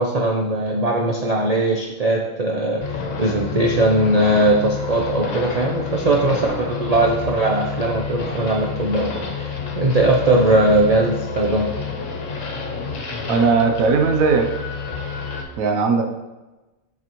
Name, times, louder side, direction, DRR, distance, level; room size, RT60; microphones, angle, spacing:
voice 1, 0.0-11.7, right 2 dB, 45° right, 0 dB, 0.5 m, -20 dB
sound 1, 2.8-15.4, left 5 dB, 70° left, 1.3 m, -29 dB
voice 2, 13.3-14.5 15.6-16.0, right 4 dB, 80° right, 4 dB, 1.1 m, -18 dB
6.8 x 6.0 x 3.0 m, 1.1 s
omnidirectional pair, 1.4 m